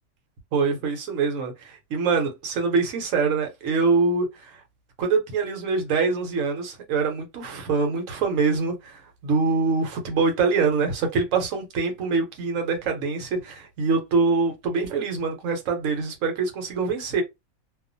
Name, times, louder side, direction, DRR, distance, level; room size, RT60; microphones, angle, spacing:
voice 1, 0.5-4.3 5.0-17.2, right 4 dB, 70° right, 1.1 m, -24 dB
2.4 x 2.3 x 2.5 m
omnidirectional pair, 1.5 m